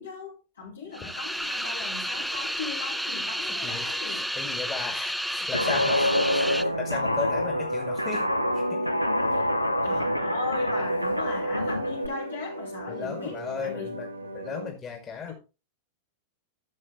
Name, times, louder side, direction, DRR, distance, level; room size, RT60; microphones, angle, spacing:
voice 1, 0.0-4.2 9.3-9.5 9.8-13.9 15.2-15.3, left 4 dB, 65° left, 4.3 m, -38 dB
sound 1, 0.9-6.6, equal, ahead, 0.5 m, -31 dB
voice 2, 3.4-8.3 8.5-8.8 12.9-15.3, left 6 dB, 25° left, 2.2 m, -36 dB
Guitar, 5.5-12.1, equal, 90° left, 0.8 m, -26 dB
sound 2, 8.0-14.7, right 2 dB, 80° right, 2.0 m, -39 dB
12.0 x 7.4 x 3.2 m
figure-of-eight pair, 90°, 0 cm